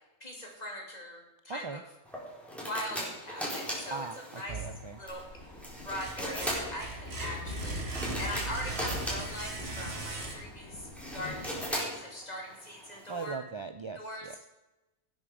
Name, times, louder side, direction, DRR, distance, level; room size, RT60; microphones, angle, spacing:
voice 1, 0.2-1.8 2.7-4.1 4.3-4.7 5.0-5.2 5.8-13.4 14.0-14.3, left 1 dB, 35° left, 0 dB, 2.9 m, -41 dB
voice 2, 1.5-1.8 3.9-5.0 13.1-14.5, right 4 dB, 40° right, 10 dB, 0.4 m, -39 dB
sound 1, 2.1-13.3, equal, ahead, 3.8 m, -39 dB
sound 2, 4.5-5.3 5.7-10.8, right 3 dB, 65° right, 1.8 m, -39 dB
Livestock farm animals working animals, 5.1-11.7, left 1 dB, 60° left, 4.0 m, -43 dB
17.0 x 8.7 x 4.9 m, 1.0 s
omnidirectional pair, 1.2 m